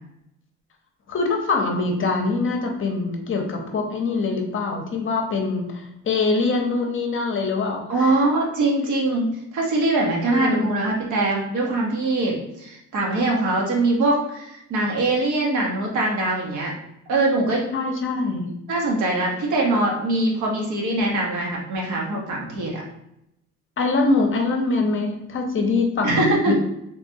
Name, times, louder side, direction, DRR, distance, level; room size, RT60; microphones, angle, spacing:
voice 1, 1.1-8.1 10.3-10.7 17.7-18.5 23.8-26.5, left 3 dB, 45° left, 2 dB, 0.6 m, -24 dB
voice 2, 7.9-9.3 9.5-16.7 17.1-17.7 18.7-22.8 26.0-26.5, right 2 dB, 75° right, -1 dB, 0.9 m, -22 dB
3.2 x 2.2 x 2.6 m, 0.81 s
cardioid pair, 90°, 30 cm